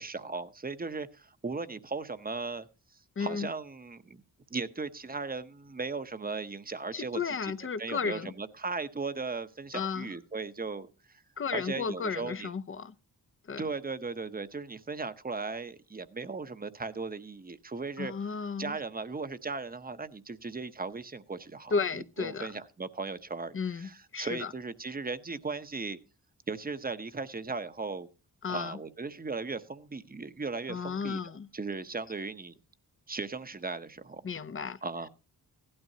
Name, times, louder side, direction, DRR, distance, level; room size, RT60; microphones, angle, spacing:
voice 1, 0.0-2.7 3.2-4.2 4.5-7.5 7.8-10.9 11.5-12.5 13.6-18.1 18.6-26.0 26.5-28.1 28.5-31.2 31.5-32.5 33.1-34.2 34.8-35.1, right 4 dB, 25° right, 0.8 m, -37 dB
voice 2, 3.2-3.5 6.9-8.3 9.7-10.1 11.4-12.9 13.5-13.6 18.0-18.8 21.7-22.5 23.5-24.5 28.4-28.8 30.7-31.5 34.2-34.8, left 5 dB, 35° left, 0.6 m, -33 dB
16.0 x 12.0 x 2.8 m
wide cardioid pair, 115°, 38 cm